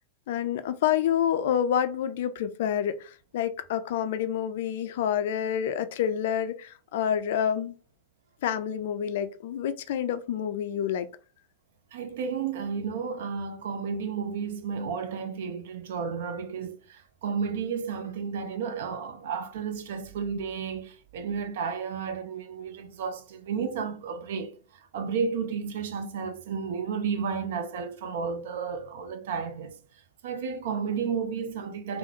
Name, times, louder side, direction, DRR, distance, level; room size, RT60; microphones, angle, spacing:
voice 1, 0.3-7.7 8.4-11.1, left 9 dB, 55° left, 0.3 m, -28 dB
voice 2, 11.9-29.8 30.2-32.0, right 6 dB, 55° right, 0.5 m, -32 dB
3.8 x 2.0 x 2.7 m
figure-of-eight pair, 90°, 0 cm